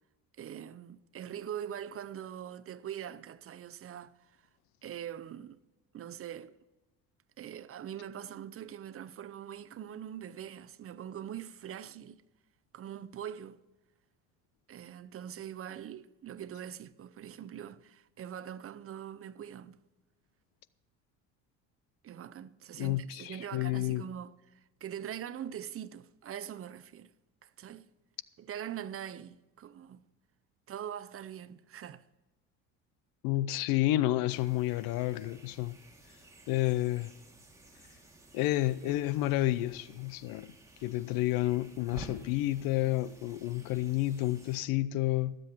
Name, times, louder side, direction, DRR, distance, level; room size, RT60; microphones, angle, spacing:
voice 1, 0.4-4.1 4.8-5.6 5.9-6.6 7.4-12.2 12.7-13.6 14.7-19.8 22.0-24.3 24.8-27.1 27.4-27.9 28.4-30.1 30.7-32.0, right 9 dB, 40° right, 0.7 m, -43 dB
voice 2, 22.8-24.0 33.2-35.8 36.5-37.1 38.3-40.5 40.8-45.4, left 16 dB, 75° left, 0.7 m, -30 dB
sound 1, 34.3-44.6, right 2 dB, 10° right, 2.6 m, -53 dB
18.5 x 7.8 x 4.5 m
supercardioid pair, 80°, 35 cm